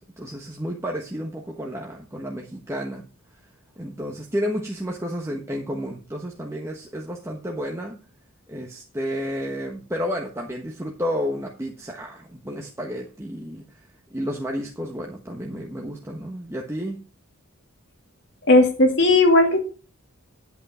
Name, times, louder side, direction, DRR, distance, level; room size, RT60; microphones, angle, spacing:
voice 1, 0.0-3.0 3.8-8.0 8.5-13.8 14.1-17.0, equal, 10° right, 0 dB, 1.2 m, -31 dB
voice 2, 18.5-19.6, left 2 dB, 55° left, 3 dB, 2.4 m, -16 dB
10.5 x 8.2 x 4.3 m, 0.36 s
head